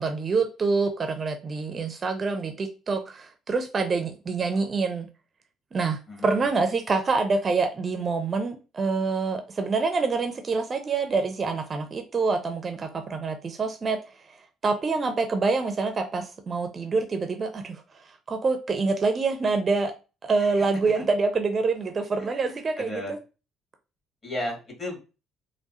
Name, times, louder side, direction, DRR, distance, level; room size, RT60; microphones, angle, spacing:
voice 1, 0.0-5.1 5.7-14.0 14.6-17.8 18.3-19.9 20.2-23.2, right 4 dB, 35° right, 0.5 m, -26 dB
voice 2, 22.2-23.1 24.2-25.0, left 1 dB, 35° left, 1.9 m, -34 dB
4.6 x 2.2 x 2.7 m
figure-of-eight pair, 50°, 0 cm